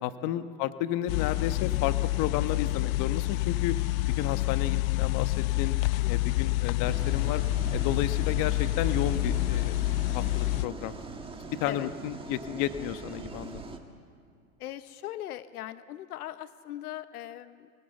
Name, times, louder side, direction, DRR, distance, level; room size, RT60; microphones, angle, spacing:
voice 1, 0.0-3.7 4.2-5.8 6.1-7.4 7.7-9.8 10.1-11.0 11.5-13.8, left 12 dB, 45° left, 11 dB, 1.2 m, -32 dB
sound 1, 1.1-10.7, left 20 dB, 65° left, 0.5 m, -28 dB
voice 2, 6.0-6.4 11.7-11.9 14.6-17.7, left 13 dB, 85° left, 13 dB, 1.0 m, -40 dB
sound 2, 6.8-13.8, right 3 dB, 10° right, 1.7 m, -40 dB
24.5 x 18.5 x 8.0 m, 2.2 s
supercardioid pair, 125°, 44 cm